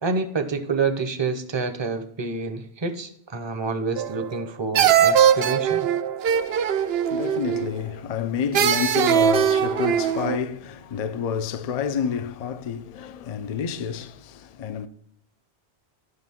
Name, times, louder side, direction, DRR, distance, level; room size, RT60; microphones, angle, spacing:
voice 1, 0.0-5.9, right 4 dB, 25° right, 0.7 m, -28 dB
sound 1, 4.0-4.4 4.7-7.8 8.5-10.4, right 9 dB, 65° right, 0.8 m, -21 dB
voice 2, 6.3-14.9, left 7 dB, 50° left, 0.5 m, -29 dB
9.8 x 5.9 x 3.6 m
omnidirectional pair, 1.2 m